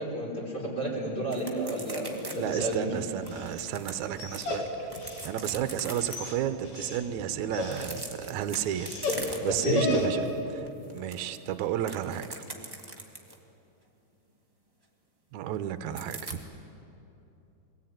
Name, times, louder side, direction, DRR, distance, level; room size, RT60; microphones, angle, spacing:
voice 1, 0.0-2.9 9.1-9.2 9.5-9.9, equal, 30° left, -4 dB, 4.8 m, -31 dB
sound 1, 1.3-2.4 2.6-2.7 3.3-4.4 4.9-6.2 7.6-9.7 10.1-10.3 10.7-13.4 16.0-16.4, right 2 dB, 10° right, 1.3 m, -41 dB
Dog, 2.1-10.4, left 2 dB, 50° left, 3.6 m, -36 dB
voice 2, 2.3-4.7 5.2-8.9 9.4-12.4 15.3-16.4, right 10 dB, 75° right, 10 dB, 2.1 m, -32 dB
23.0 x 18.0 x 9.3 m, 2.9 s
omnidirectional pair, 3.6 m